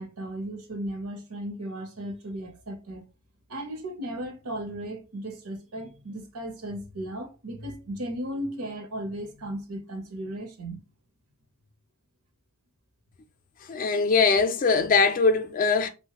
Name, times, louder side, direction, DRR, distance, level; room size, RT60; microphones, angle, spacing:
voice 1, 0.0-3.0 3.5-10.8, right 1 dB, 80° right, 0.7 m, -36 dB
voice 2, 13.7-15.9, left 4 dB, 35° left, 0.3 m, -21 dB
3.1 x 2.1 x 2.8 m
head